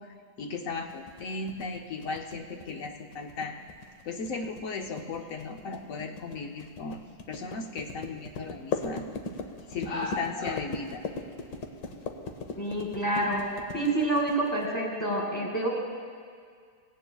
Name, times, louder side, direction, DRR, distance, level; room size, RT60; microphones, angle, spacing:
voice 1, 0.0-3.6 4.0-7.0 7.3-9.1 9.7-11.0, left 4 dB, 55° left, 3 dB, 0.9 m, -36 dB
sound 1, 0.9-14.6, left 4 dB, 75° left, 1.6 m, -38 dB
voice 2, 12.6-15.7, right 1 dB, 10° left, -2 dB, 2.1 m, -28 dB
18.0 x 17.0 x 2.3 m, 2.1 s
omnidirectional pair, 2.1 m